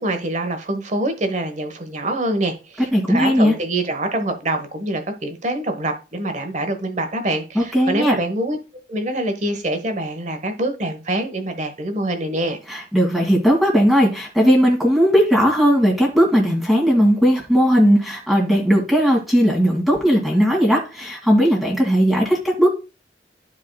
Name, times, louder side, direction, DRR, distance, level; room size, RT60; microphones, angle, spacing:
voice 1, 0.0-8.6 8.9-12.6, right 1 dB, 45° right, 1.3 m, -25 dB
voice 2, 2.9-3.5 7.6-8.2 12.7-22.7, equal, ahead, 1.9 m, -17 dB
13.5 x 4.8 x 2.3 m
head